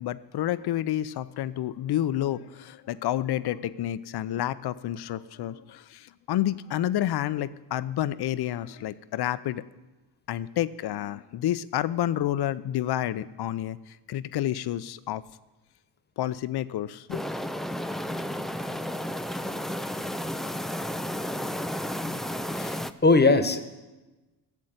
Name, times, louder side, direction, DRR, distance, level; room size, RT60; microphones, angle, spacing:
voice 1, 0.0-6.0 6.3-9.6 10.3-13.8 14.1-15.2 16.2-17.2, left 12 dB, 55° left, 15 dB, 0.7 m, -29 dB
sound 1, 17.1-22.9, left 1 dB, ahead, 0.4 m, -32 dB
voice 2, 22.6-23.6, left 3 dB, 20° left, 10 dB, 1.3 m, -21 dB
13.5 x 7.4 x 8.0 m, 1.1 s
supercardioid pair, 65°, 48 cm